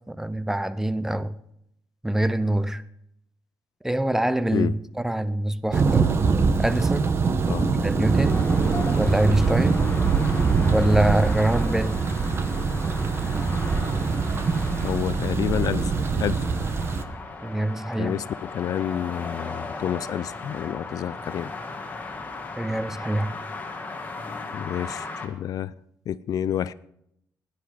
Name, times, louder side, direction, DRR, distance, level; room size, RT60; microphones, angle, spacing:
voice 1, 0.1-1.4 2.0-2.8 3.8-6.1 6.6-7.1 7.8-8.4 9.0-9.8 10.7-12.0 17.4-18.1 22.6-23.3, right 1 dB, 5° right, 0.5 m, -24 dB
Thunder, 5.7-17.0, right 5 dB, 35° right, 1.0 m, -23 dB
voice 2, 7.5-7.9 14.8-15.9 16.2-16.5 18.0-21.5 24.5-25.7 26.1-26.7, left 10 dB, 60° left, 0.4 m, -29 dB
sound 1, 8.0-25.3, left 3 dB, 25° left, 1.8 m, -37 dB
17.0 x 10.5 x 5.0 m
cardioid pair, 140°, 7 cm